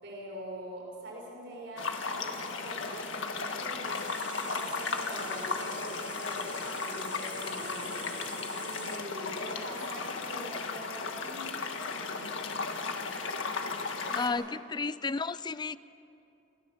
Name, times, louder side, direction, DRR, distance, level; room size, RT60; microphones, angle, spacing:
voice 1, 0.0-4.2 4.5-8.1 8.6-12.4 14.1-14.4, equal, 70° right, -2 dB, 6.1 m, -44 dB
sound 1, 1.8-14.3, left 4 dB, 85° left, 1.8 m, -35 dB
sound 2, 3.8-9.0, right 1 dB, 5° right, 1.2 m, -46 dB
voice 2, 14.1-15.8, left 4 dB, 25° left, 17 dB, 0.4 m, -32 dB
28.5 x 15.5 x 7.4 m, 2.7 s
head